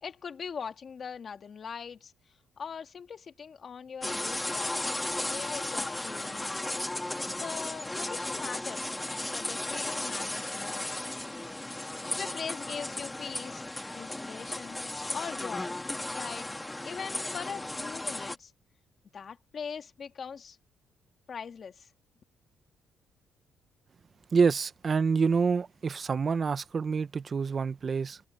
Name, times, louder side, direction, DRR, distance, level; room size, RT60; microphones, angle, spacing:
voice 1, 0.0-2.1 2.6-4.8 5.2-6.5 7.3-8.9 9.3-10.8 12.1-13.6 13.9-14.8 15.1-15.8 16.1-16.5 16.8-18.5 19.1-20.6 21.3-21.9, left 6 dB, 50° left, 2.4 m, -41 dB
sound 1, 4.0-18.4, left 1 dB, 10° left, 2.1 m, -35 dB
voice 2, 24.3-28.2, right 5 dB, 40° right, 0.9 m, -27 dB
cardioid pair, 90°, 0 cm